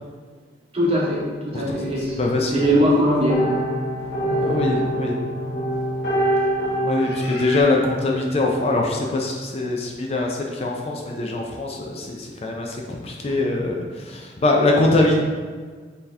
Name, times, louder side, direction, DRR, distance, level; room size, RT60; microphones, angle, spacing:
voice 1, 0.7-2.2 2.5-3.6 13.3-13.4, equal, 35° right, -5 dB, 0.9 m, -20 dB
voice 2, 2.2-2.6 4.4-5.2 6.8-15.2, left 2 dB, 35° left, 0 dB, 0.4 m, -22 dB
sound 1, 2.6-7.6, right 1 dB, 85° left, 1.1 m, -25 dB
4.3 x 2.8 x 3.2 m, 1.5 s
head